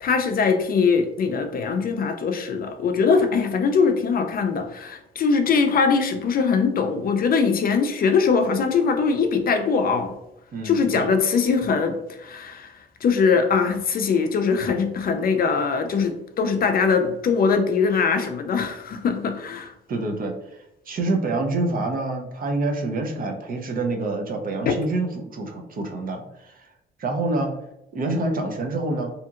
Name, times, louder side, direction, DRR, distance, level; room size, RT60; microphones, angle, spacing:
voice 1, 0.0-10.1 10.6-12.7 13.0-19.7 24.7-24.8, left 5 dB, 50° left, 6 dB, 0.4 m, -21 dB
voice 2, 10.5-11.1 19.9-26.7 27.0-27.5 27.9-29.1, right 2 dB, 45° right, 2 dB, 0.6 m, -27 dB
2.8 x 2.6 x 2.4 m, 0.86 s
cardioid pair, 90°, 20 cm